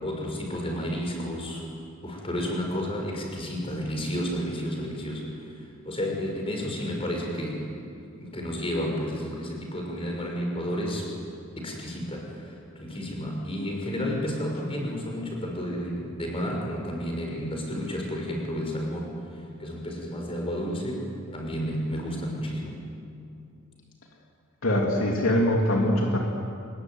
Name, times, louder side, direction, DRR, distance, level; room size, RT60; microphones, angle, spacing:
voice 1, 0.0-1.6 2.0-5.3 5.8-7.6 8.2-11.1 11.6-19.1 19.6-21.1 21.3-22.7, equal, 25° left, 0 dB, 6.1 m, -31 dB
voice 2, 24.6-26.2, left 1 dB, 70° left, 0 dB, 3.0 m, -23 dB
25.0 x 22.0 x 9.5 m, 2.4 s
head